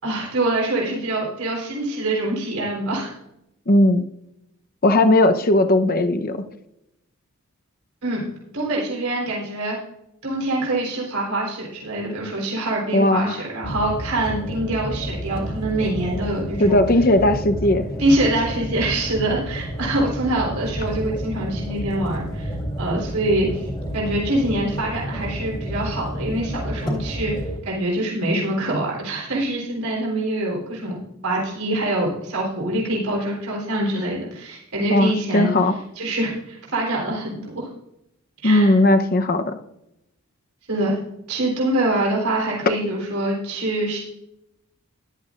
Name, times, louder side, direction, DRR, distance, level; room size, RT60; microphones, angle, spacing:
voice 1, 0.0-3.1 8.0-8.2 8.5-9.8 10.2-16.8 18.0-23.7 23.9-27.3 27.6-35.6 36.0-37.7 38.4-38.7 40.7-41.0 41.3-44.0, right 1 dB, 80° right, -3 dB, 3.7 m, -24 dB
voice 2, 3.7-4.0 4.8-6.4 12.9-13.4 16.6-17.8 34.9-35.7 38.4-39.6, left 1 dB, 40° left, 8 dB, 0.8 m, -17 dB
sound 1, 13.6-27.6, equal, 20° left, 1.8 m, -30 dB
14.0 x 11.5 x 2.5 m, 0.83 s
head